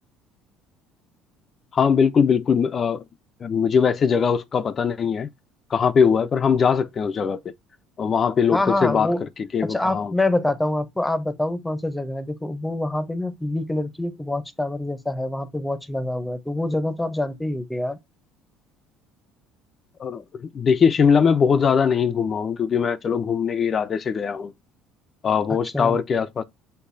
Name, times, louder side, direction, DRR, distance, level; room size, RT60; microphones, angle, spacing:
voice 1, 1.7-3.0 3.4-5.3 5.7-7.4 8.0-9.1 9.5-10.1 20.0-24.5 25.2-26.4, left 6 dB, 40° left, 0.4 m, -21 dB
voice 2, 8.5-9.2 9.6-18.0 25.5-26.0, left 1 dB, 5° left, 0.8 m, -26 dB
6.6 x 2.7 x 2.6 m
supercardioid pair, 90°, 0 cm